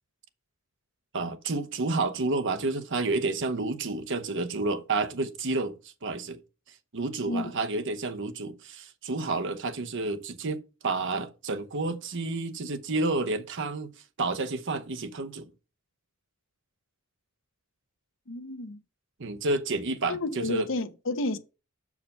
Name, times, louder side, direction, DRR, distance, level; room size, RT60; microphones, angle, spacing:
voice 1, 1.1-5.8 6.0-6.4 6.9-13.9 14.2-15.5 19.2-20.7, right 3 dB, 60° right, 0.8 m, -30 dB
voice 2, 18.3-18.8 20.1-21.4, left 2 dB, 65° left, 0.9 m, -31 dB
6.6 x 4.9 x 5.4 m
head